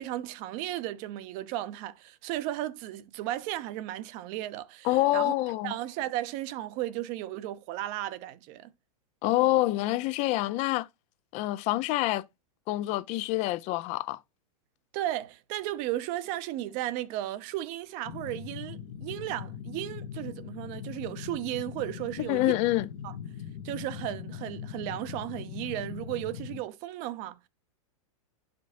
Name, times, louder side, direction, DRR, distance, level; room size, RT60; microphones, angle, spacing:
voice 1, 0.0-5.3 5.6-8.7 14.9-22.6 23.0-23.1 23.6-27.4, right 14 dB, 45° right, 0.8 m, -35 dB
voice 2, 4.8-5.7 9.2-10.9 11.3-12.2 12.7-14.2 22.2-22.9, left 17 dB, 40° left, 0.5 m, -26 dB
sound 1, 18.0-26.6, left 8 dB, 60° left, 1.1 m, -41 dB
11.5 x 5.2 x 2.6 m
hypercardioid pair, 125°, 18 cm